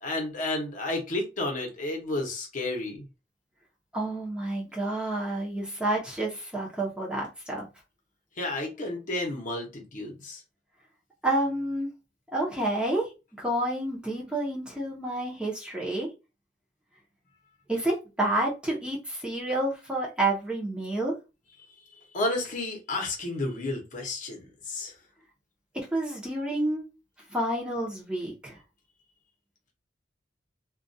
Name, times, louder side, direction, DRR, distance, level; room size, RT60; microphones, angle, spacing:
voice 1, 0.0-3.1 8.4-10.4 22.1-24.9, left 2 dB, 45° left, 0.8 m, -31 dB
voice 2, 3.9-7.7 11.2-11.9 12.3-13.1 13.4-16.1 17.7-21.1 25.7-26.9 27.3-28.6, right 1 dB, 5° right, 0.6 m, -29 dB
2.2 x 2.2 x 2.6 m
head